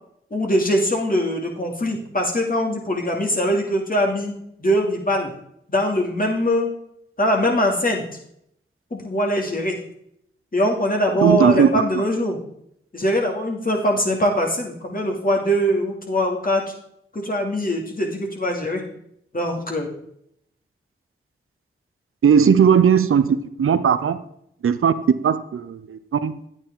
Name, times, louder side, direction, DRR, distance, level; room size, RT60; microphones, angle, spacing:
voice 1, 0.3-4.3 4.6-5.3 5.7-6.7 7.2-8.0 8.9-9.8 10.5-12.4 12.9-16.6 17.1-18.8 19.3-19.9 22.4-23.4 24.0-24.1, equal, 45° left, 1 dB, 2.6 m, -22 dB
voice 2, 11.2-11.7 22.2-24.2 24.6-24.9 25.2-26.3, right 7 dB, 80° right, 12 dB, 0.6 m, -17 dB
9.7 x 8.9 x 3.8 m, 0.71 s
cardioid pair, 45°, 21 cm